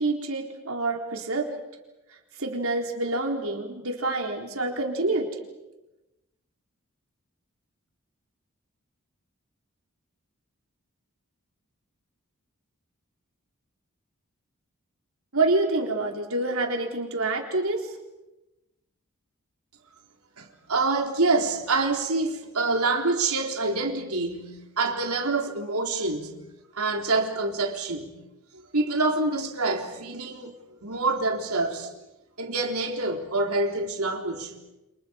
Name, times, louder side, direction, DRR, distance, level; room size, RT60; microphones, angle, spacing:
voice 1, 0.0-1.5 2.3-5.3 15.3-17.9, right 2 dB, 70° right, 4.1 m, -27 dB
voice 2, 20.4-26.3 26.7-28.1 28.5-31.9 32.4-34.5, right 3 dB, 90° right, 3.9 m, -26 dB
29.5 x 29.0 x 5.3 m
head